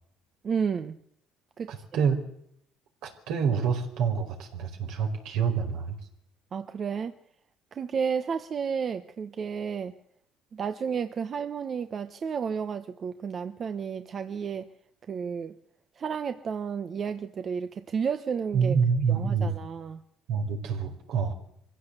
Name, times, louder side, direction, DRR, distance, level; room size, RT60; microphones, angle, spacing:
voice 1, 0.4-1.0 1.6-1.7 6.5-7.1 7.7-9.9 10.5-14.7 15.1-15.5 16.0-18.8 19.1-20.0, right 6 dB, 40° right, 1.1 m, -32 dB
voice 2, 1.7-2.2 3.0-6.0 18.5-19.6 20.3-21.3, right 6 dB, 75° right, 4.8 m, -27 dB
24.0 x 16.0 x 8.2 m
cardioid pair, 105°, 0 cm